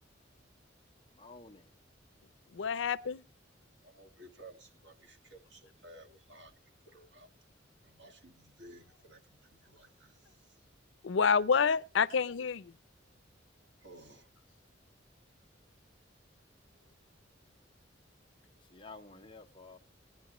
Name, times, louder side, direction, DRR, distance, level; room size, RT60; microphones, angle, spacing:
voice 1, 1.2-1.7 18.7-19.8, left 3 dB, 25° left, 0.8 m, -51 dB
voice 2, 2.5-3.2 11.0-12.7, left 6 dB, 85° left, 0.5 m, -28 dB
voice 3, 3.8-6.5 6.9-7.3 7.8-10.6 13.8-14.3, right 1 dB, 75° right, 1.8 m, -56 dB
18.5 x 10.5 x 3.0 m
head